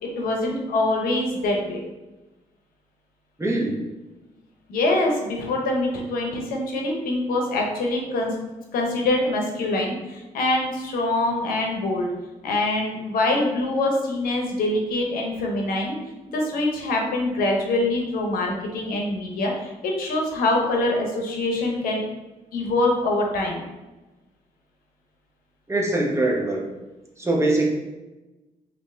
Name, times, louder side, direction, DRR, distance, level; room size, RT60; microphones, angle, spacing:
voice 1, 0.0-1.8 4.7-8.3 8.7-12.1 12.4-16.0 16.3-22.0 22.5-23.6, left 2 dB, 80° left, 1 dB, 0.7 m, -24 dB
voice 2, 3.4-3.8 25.7-26.6 27.2-27.7, right 2 dB, 20° right, -2 dB, 0.9 m, -22 dB
3.3 x 2.6 x 3.2 m, 1.1 s
supercardioid pair, 60°, 15 cm